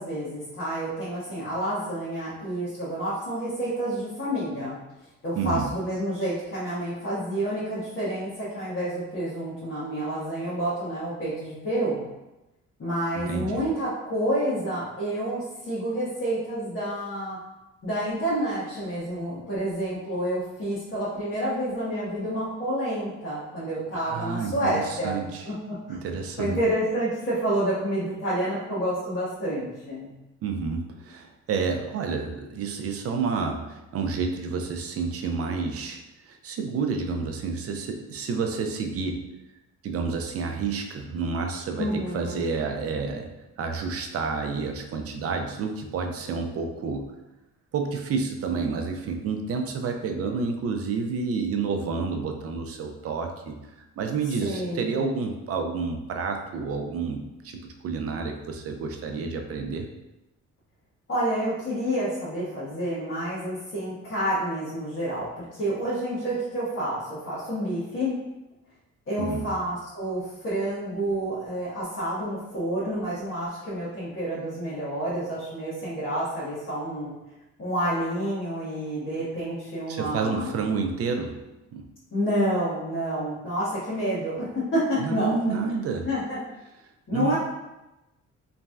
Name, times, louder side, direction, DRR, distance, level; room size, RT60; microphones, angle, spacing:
voice 1, 0.0-4.7 5.2-12.0 12.8-17.4 17.8-25.5 25.9-30.1 41.8-42.4 54.4-55.0 61.1-68.1 69.1-77.1 77.6-80.6 82.1-85.3 86.0-86.4 87.1-87.4, right 1 dB, 40° left, -10 dB, 1.2 m, -29 dB
voice 2, 5.4-5.7 13.3-13.7 23.9-25.5 25.9-26.6 30.4-39.2 39.8-43.3 43.6-47.1 47.7-53.6 54.0-59.9 69.2-69.5 79.9-81.4 81.7-81.9 85.0-86.1 87.1-87.4, right 5 dB, 50° right, 4 dB, 0.5 m, -29 dB
3.1 x 2.6 x 2.2 m, 0.99 s
cardioid pair, 90°, 30 cm